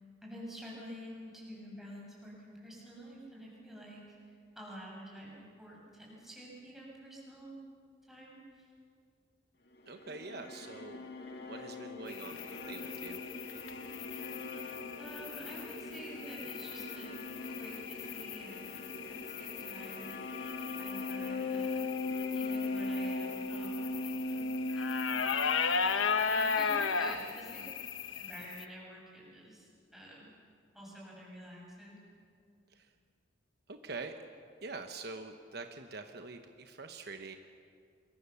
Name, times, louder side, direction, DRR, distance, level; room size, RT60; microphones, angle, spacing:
voice 1, 0.2-7.6 8.0-8.7 15.0-20.2 20.8-21.9 22.3-25.5 26.2-27.8 28.1-30.4 30.7-32.0, equal, ahead, -4 dB, 7.0 m, -49 dB
sound 1, 9.8-26.1, left 2 dB, 55° left, 2.3 m, -40 dB
voice 2, 9.9-11.1 11.4-13.2 27.6-27.7 32.7-32.9 33.7-34.1 34.6-37.4, right 3 dB, 55° right, 6 dB, 1.1 m, -45 dB
sound 2, 12.1-28.6, left 5 dB, 85° left, 1.1 m, -37 dB
28.0 x 22.5 x 7.1 m, 2.3 s
head